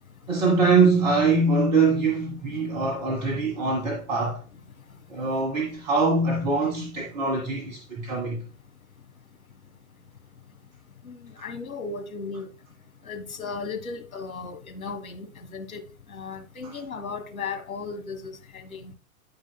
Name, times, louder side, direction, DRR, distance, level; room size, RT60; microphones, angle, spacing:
voice 1, 0.3-4.4 5.1-8.4 16.6-16.7, right 3 dB, 35° right, 1.7 m, -23 dB
voice 2, 11.0-12.5 13.0-15.8 16.1-18.9, left 4 dB, 75° left, 1.6 m, -36 dB
12.0 x 5.1 x 2.2 m
figure-of-eight pair, 125°, 42 cm